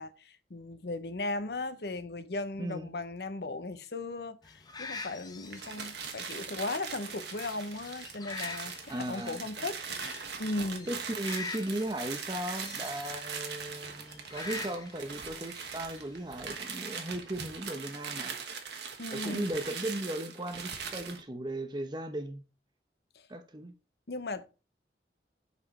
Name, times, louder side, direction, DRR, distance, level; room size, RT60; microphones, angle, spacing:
voice 1, 0.0-10.9 19.0-19.5 24.1-24.5, left 2 dB, 70° left, 0.8 m, -37 dB
voice 2, 2.6-2.9 8.9-9.4 10.9-18.4 19.1-22.4 23.3-23.7, right 1 dB, 25° right, 0.8 m, -37 dB
sound 1, 4.4-16.7, left 4 dB, 20° left, 0.9 m, -46 dB
sound 2, 5.4-21.2, right 6 dB, 75° right, 1.4 m, -41 dB
7.1 x 5.0 x 4.2 m
head